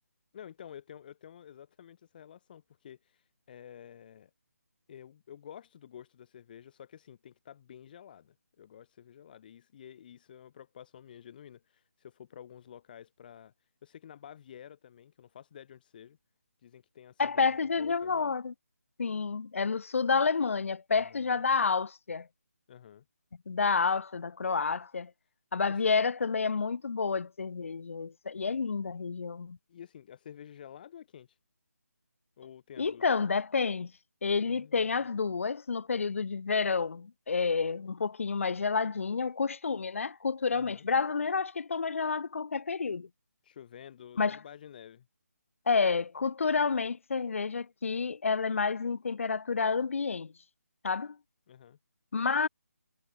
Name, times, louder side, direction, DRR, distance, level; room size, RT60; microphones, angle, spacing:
voice 1, 0.3-4.3 4.9-16.2 16.6-18.3 20.9-21.3 22.7-23.0 25.5-25.9 29.7-31.4 32.4-33.1 34.4-34.9 40.5-40.9 43.4-45.1 51.5-51.8, left 9 dB, 30° left, 5.6 m, -51 dB
voice 2, 17.2-18.5 19.0-22.3 23.5-25.1 25.5-29.6 32.8-33.9 34.2-43.1 44.2-44.4 45.7-50.3 50.8-51.2 52.1-52.5, left 5 dB, 55° left, 0.8 m, -29 dB
figure-of-eight pair, 150°, 9 cm